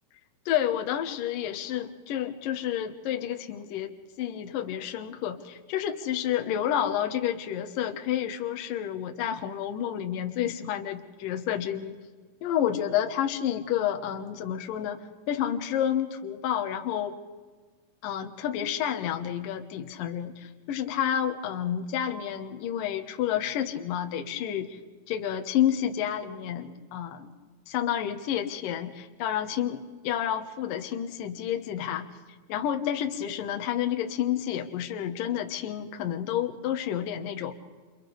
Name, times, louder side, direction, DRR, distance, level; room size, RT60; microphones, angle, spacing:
voice 1, 0.5-12.0 12.4-17.2 18.0-24.8 25.1-27.3 27.7-32.1 32.5-37.5, left 10 dB, 65° left, 5 dB, 2.5 m, -30 dB
29.0 x 29.0 x 3.5 m, 1.4 s
omnidirectional pair, 5.0 m